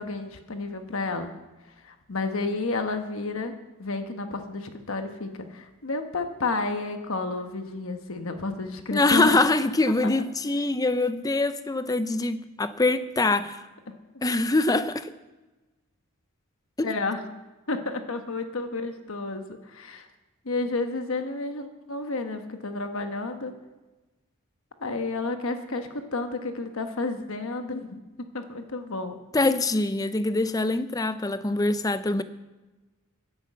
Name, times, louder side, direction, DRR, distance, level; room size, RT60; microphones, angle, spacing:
voice 1, 0.0-1.3 1.8-3.5 3.8-9.4 16.8-17.2 17.7-20.1 20.4-23.5 24.8-29.2, left 3 dB, 65° left, 1.1 m, -31 dB
voice 2, 8.9-13.6 14.2-15.1 16.8-16.9 29.3-32.2, left 2 dB, 15° left, 0.5 m, -24 dB
11.0 x 10.5 x 7.5 m
head